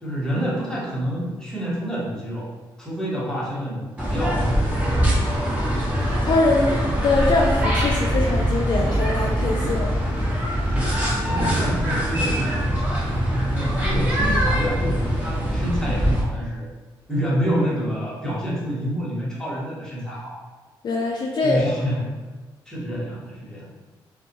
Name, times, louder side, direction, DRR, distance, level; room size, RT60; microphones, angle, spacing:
voice 1, 0.0-2.5 2.8-5.0 9.6-9.7 10.6-13.1 13.5-16.6 17.1-20.4 21.4-22.1 22.7-23.7, equal, 5° left, -7 dB, 1.2 m, -28 dB
sound 1, 4.0-16.2, equal, 15° right, 1.1 m, -23 dB
voice 2, 6.2-9.9 20.8-21.6, left 2 dB, 50° left, -1 dB, 0.4 m, -23 dB
2.2 x 2.2 x 2.8 m, 1.3 s
supercardioid pair, 50°, 9 cm